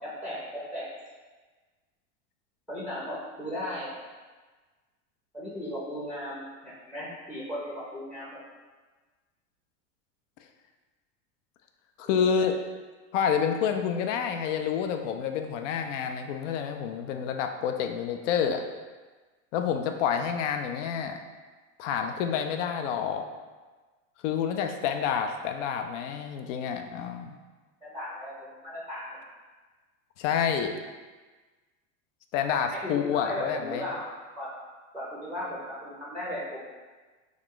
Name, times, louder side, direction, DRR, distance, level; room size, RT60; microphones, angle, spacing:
voice 1, 0.0-0.8 2.7-4.0 5.3-8.4 12.0-12.5 27.8-29.3 32.7-34.1 34.4-34.5 34.9-36.6, left 1 dB, ahead, -7 dB, 0.5 m, -36 dB
voice 2, 12.0-12.6 13.1-18.6 19.5-21.2 21.8-23.2 24.2-27.4 30.2-30.7 32.3-33.8, left 7 dB, 65° left, 5 dB, 0.5 m, -28 dB
3.1 x 2.4 x 3.6 m, 1.3 s
supercardioid pair, 130°, 40 cm